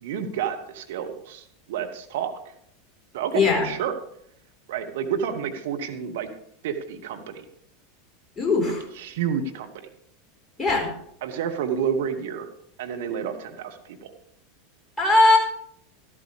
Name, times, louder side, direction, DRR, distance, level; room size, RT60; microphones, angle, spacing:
voice 1, 0.0-2.3 3.1-4.0 4.7-6.3 6.6-7.4 9.0-9.9 11.2-12.5 12.8-14.1, right 8 dB, 65° right, 7 dB, 1.1 m, -30 dB
voice 2, 3.3-3.7 8.4-8.8 10.6-10.9 15.0-15.4, left 3 dB, 15° left, -1 dB, 4.4 m, -19 dB
13.0 x 12.0 x 3.4 m, 0.71 s
hypercardioid pair, 85°, 0 cm